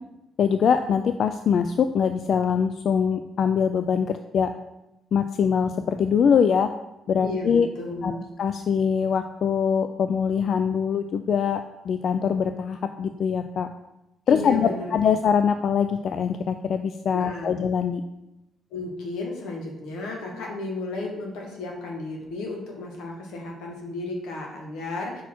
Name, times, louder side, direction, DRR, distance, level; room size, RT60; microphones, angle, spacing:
voice 1, 0.4-4.5 5.1-6.7 7.1-7.7 8.0-8.1 8.4-13.7 14.3-18.0, left 7 dB, 60° left, 8 dB, 0.3 m, -23 dB
voice 2, 7.2-8.2 14.3-14.9 17.1-17.6 18.7-25.2, left 2 dB, 90° left, 0 dB, 1.4 m, -33 dB
5.7 x 4.2 x 4.4 m, 0.92 s
cardioid pair, 90°, 0 cm